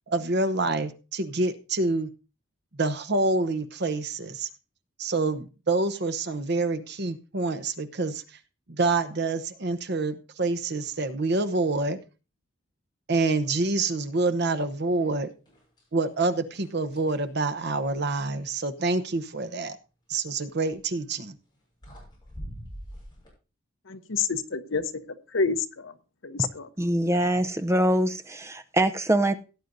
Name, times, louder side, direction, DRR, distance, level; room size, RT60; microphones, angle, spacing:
voice 1, 0.1-2.1 2.7-4.5 5.0-8.2 8.7-12.0 13.1-15.3 15.9-19.8 20.1-21.4, right 3 dB, 55° right, 0.9 m, -27 dB
sound 1, 14.9-15.1 15.5-16.1 16.5-18.4 20.6-20.9 21.5-21.6 21.8-23.3, equal, 20° left, 6.8 m, -44 dB
voice 2, 23.9-24.8 25.3-25.9 26.2-26.7, left 5 dB, 70° left, 0.9 m, -28 dB
voice 3, 26.8-29.3, right 1 dB, 15° right, 0.6 m, -24 dB
17.0 x 9.1 x 2.7 m
head